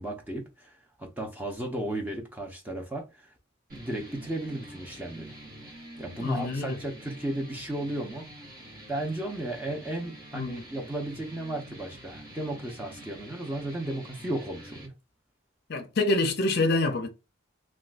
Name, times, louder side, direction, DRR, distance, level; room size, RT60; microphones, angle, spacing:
voice 1, 0.0-3.3 3.7-5.3 6.0-8.3 8.9-14.9, right 1 dB, 10° right, 0.6 m, -34 dB
sound 1, 3.7-14.9, right 1 dB, 40° right, 1.2 m, -47 dB
voice 2, 6.2-6.8 10.3-10.6 15.7-17.1, left 2 dB, 50° left, 0.5 m, -26 dB
3.6 x 2.3 x 2.5 m
head